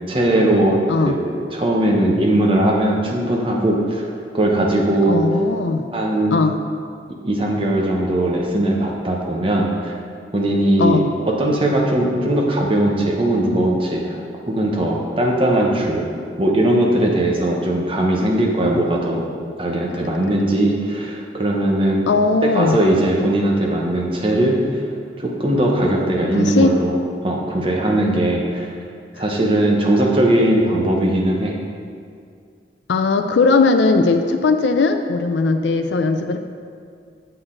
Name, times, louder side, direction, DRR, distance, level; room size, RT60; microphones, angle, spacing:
voice 1, 0.1-4.0 4.3-5.2 5.9-6.3 7.2-9.9 10.3-14.2 14.5-16.1 16.4-19.3 19.6-22.1 22.4-24.8 25.2-27.0 27.2-28.8 29.2-31.6, right 1 dB, 30° right, 0 dB, 0.9 m, -19 dB
voice 2, 5.1-5.8 6.3-6.5 10.8-11.1 22.1-22.8 26.3-26.8 32.9-36.4, left 3 dB, 80° left, 7 dB, 0.4 m, -18 dB
7.8 x 6.2 x 3.8 m, 2.2 s
head